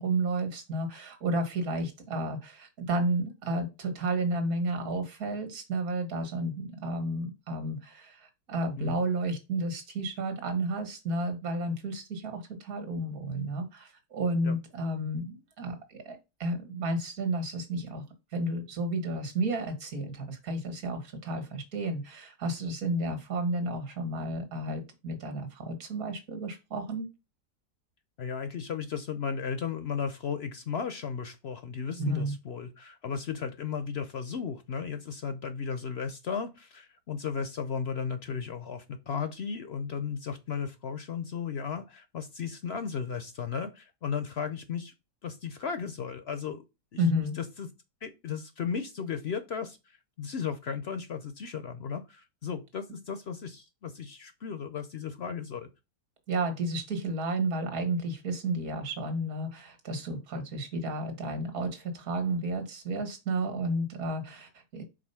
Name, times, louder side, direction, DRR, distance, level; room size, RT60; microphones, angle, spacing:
voice 1, 0.0-18.0 18.3-27.1 32.0-32.3 47.0-47.4 56.3-64.8, right 2 dB, 60° right, 1.9 m, -32 dB
voice 2, 28.2-44.9 45.2-46.6 46.9-47.0 47.3-47.7 48.0-55.7 60.3-60.4, left 6 dB, 65° left, 0.6 m, -35 dB
5.2 x 3.9 x 5.6 m
omnidirectional pair, 1.8 m